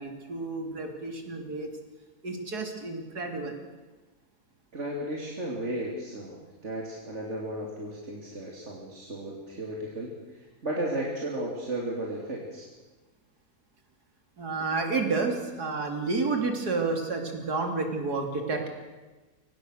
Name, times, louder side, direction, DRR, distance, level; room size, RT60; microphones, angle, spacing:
voice 1, 0.0-1.7 2.2-3.6 14.4-18.7, right 3 dB, 80° right, 4 dB, 3.4 m, -30 dB
voice 2, 4.7-12.7, right 1 dB, 45° right, -2 dB, 3.2 m, -34 dB
23.5 x 18.5 x 6.5 m, 1.2 s
omnidirectional pair, 1.7 m